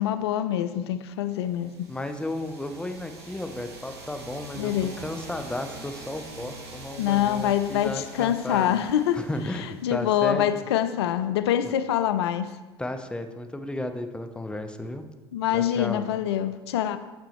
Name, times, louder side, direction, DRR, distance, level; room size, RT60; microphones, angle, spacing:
voice 1, 0.0-1.9 4.6-5.0 7.0-9.3 9.5-12.5 15.3-17.0, left 11 dB, 80° left, 12 dB, 0.4 m, -25 dB
sound 1, 1.4-10.1, right 2 dB, 85° right, 1.3 m, -44 dB
voice 2, 1.9-8.7 9.1-10.5 11.6-11.7 12.8-15.1 15.5-16.0, left 1 dB, 5° left, 7 dB, 0.7 m, -34 dB
7.0 x 6.0 x 4.2 m, 1.2 s
hypercardioid pair, 75°, 13 cm